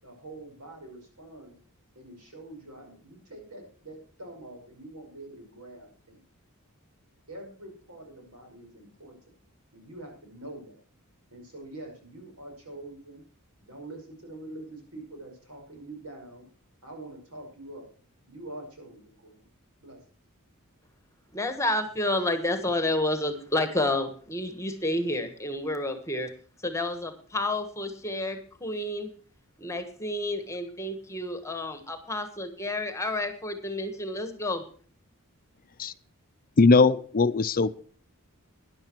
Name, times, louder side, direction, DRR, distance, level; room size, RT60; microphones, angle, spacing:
voice 1, 0.0-1.6 2.0-6.2 7.3-9.2 9.7-10.7 11.3-13.2 13.6-16.5 16.8-17.9 18.3-19.5 19.8-20.0, right 1 dB, 80° right, 2 dB, 5.4 m, -45 dB
voice 2, 21.3-26.3 26.6-29.1 29.6-34.6, left 1 dB, 15° left, 8 dB, 1.4 m, -30 dB
voice 3, 36.6-37.7, left 3 dB, 40° left, 13 dB, 0.5 m, -20 dB
13.5 x 10.5 x 4.5 m, 0.43 s
head